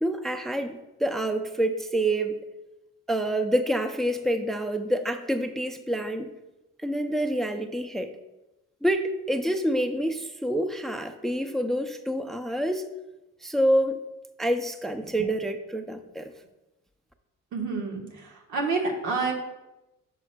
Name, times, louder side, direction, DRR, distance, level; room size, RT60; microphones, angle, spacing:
voice 1, 0.0-2.4 3.1-6.3 6.8-8.1 8.8-12.9 13.4-14.0 14.4-16.3, right 1 dB, ahead, 8 dB, 0.4 m, -27 dB
voice 2, 17.5-19.3, right 4 dB, 85° right, 0 dB, 1.4 m, -28 dB
9.6 x 6.1 x 2.2 m, 1.0 s
cardioid pair, 90°, 30 cm